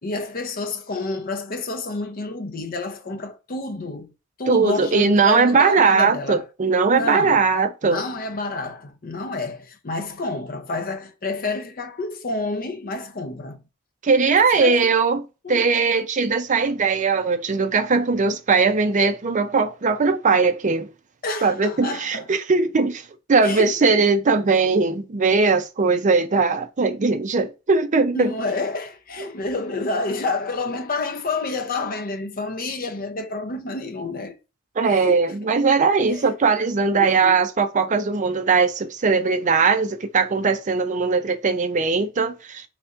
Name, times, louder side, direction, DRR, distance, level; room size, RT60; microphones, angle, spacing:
voice 1, 0.0-4.1 4.4-6.4 6.9-7.5 7.8-13.6 14.2-14.9 15.4-15.7 21.2-22.3 23.4-24.0 28.1-34.4 34.8-35.6 36.1-36.3 37.0-37.4, left 3 dB, 45° left, 0.7 m, -29 dB
voice 2, 4.5-8.0 14.0-15.2 15.5-20.9 21.4-23.0 23.3-28.3 34.8-42.6, right 4 dB, 40° right, 0.5 m, -19 dB
4.1 x 3.3 x 2.5 m
head